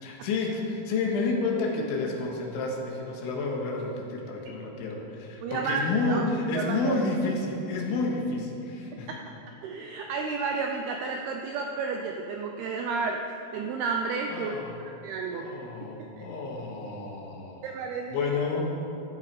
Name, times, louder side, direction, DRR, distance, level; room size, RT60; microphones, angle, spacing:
voice 1, 0.0-9.1 14.3-14.8 15.3-17.7 18.1-18.7, left 3 dB, 80° left, 0 dB, 4.0 m, -30 dB
voice 2, 5.4-6.2 6.5-7.0 9.1-9.2 9.6-13.2 13.5-14.5 14.9-15.5 16.0-16.3 17.6-18.3, right 4 dB, 85° right, 2 dB, 2.2 m, -31 dB
14.5 x 12.0 x 4.9 m, 3.0 s
omnidirectional pair, 5.4 m